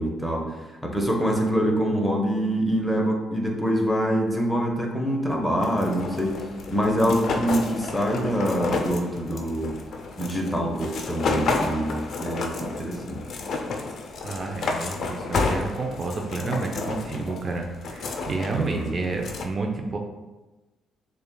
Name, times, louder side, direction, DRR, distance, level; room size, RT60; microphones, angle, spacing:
voice 1, 0.0-6.4 6.7-9.8 10.2-13.2 18.5-18.9, equal, 10° left, 0 dB, 0.8 m, -25 dB
sound 1, 5.6-19.5, left 3 dB, 60° left, 0.5 m, -31 dB
voice 2, 14.2-20.0, right 3 dB, 40° right, 2 dB, 0.4 m, -30 dB
6.7 x 2.3 x 2.2 m, 1.1 s
cardioid pair, 90°, 0 cm